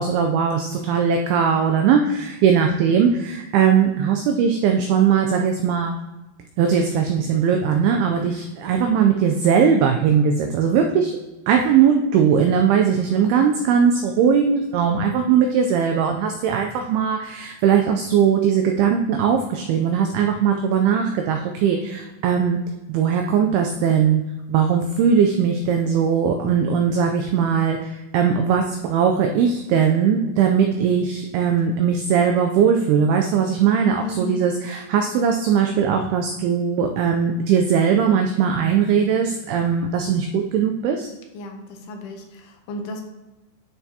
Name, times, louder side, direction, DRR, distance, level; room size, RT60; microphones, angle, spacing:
voice 1, 0.0-6.0 6.6-11.1 11.5-22.6 22.9-24.2 24.5-41.1, right 7 dB, 85° right, 3 dB, 2.2 m, -19 dB
voice 2, 33.9-34.4 41.3-43.0, left 1 dB, 75° left, 3 dB, 2.6 m, -33 dB
11.0 x 4.4 x 2.8 m, 1.0 s
omnidirectional pair, 5.1 m